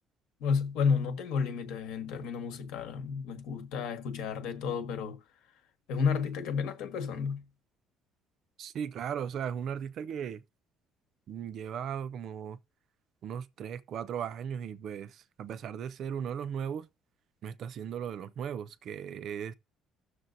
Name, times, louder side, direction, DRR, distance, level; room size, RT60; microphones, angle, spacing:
voice 1, 0.4-5.2 5.9-7.4, left 6 dB, 75° left, 1.3 m, -31 dB
voice 2, 8.6-10.4 11.3-12.6 13.2-16.9 17.4-19.5, right 8 dB, 40° right, 0.4 m, -37 dB
15.5 x 6.5 x 2.6 m
cardioid pair, 180°, 0 cm